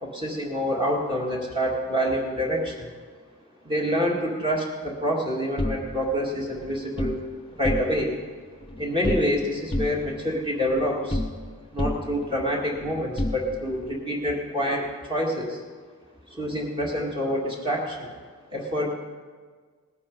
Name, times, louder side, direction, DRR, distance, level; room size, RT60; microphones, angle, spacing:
voice 1, 0.0-2.9 3.6-7.2 7.6-8.1 8.8-11.2 11.7-15.6 16.3-18.1 18.5-19.0, equal, 25° right, -2 dB, 2.1 m, -27 dB
sound 1, 5.6-7.2 7.5-8.2 8.5-9.4 9.7-11.5 11.8-13.9, left 1 dB, 25° left, 0.8 m, -31 dB
18.0 x 9.5 x 5.4 m, 1.5 s
head